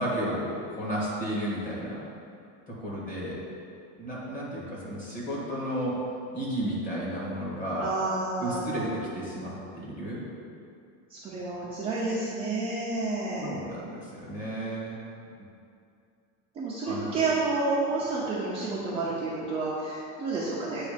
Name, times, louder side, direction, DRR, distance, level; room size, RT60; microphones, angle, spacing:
voice 1, 0.0-2.0 2.7-3.4 4.0-5.9 6.3-7.9 8.4-8.9 9.1-10.2 13.4-15.0 16.8-17.2, right 1 dB, 20° left, -7 dB, 1.7 m, -33 dB
voice 2, 7.8-8.9 11.1-13.5 16.6-20.8, right 3 dB, 15° right, -9 dB, 0.6 m, -30 dB
8.6 x 3.2 x 5.0 m, 2.5 s
cardioid pair, 170°, 40 cm